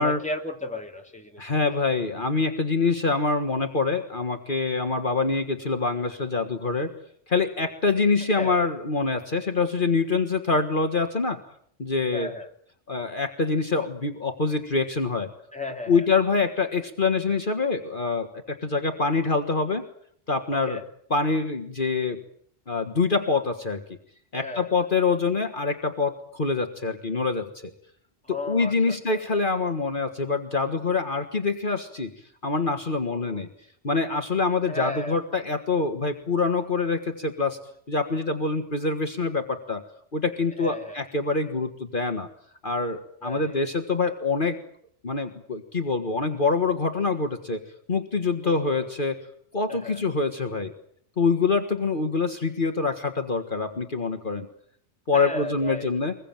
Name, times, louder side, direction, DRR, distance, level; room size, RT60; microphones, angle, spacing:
voice 1, 0.0-1.6 8.2-8.6 12.1-12.5 15.5-16.1 20.5-20.9 24.3-24.7 28.2-29.2 33.1-33.5 34.7-35.2 40.5-41.0 43.2-43.6 48.4-48.9 49.7-50.0 55.1-55.9, left 2 dB, 5° left, 3 dB, 2.8 m, -35 dB
voice 2, 1.4-6.9 7.3-11.4 11.8-12.3 12.9-15.3 15.9-19.8 20.3-20.8 21.1-22.2 22.7-23.8 24.3-27.7 28.3-32.1 32.4-33.5 33.8-37.6 37.9-39.8 40.1-42.3 42.6-44.6 45.0-47.6 47.9-49.2 49.5-50.7 51.2-54.5 55.1-56.1, left 4 dB, 45° left, 5 dB, 1.9 m, -25 dB
24.5 x 21.5 x 9.0 m, 0.66 s
omnidirectional pair, 1.2 m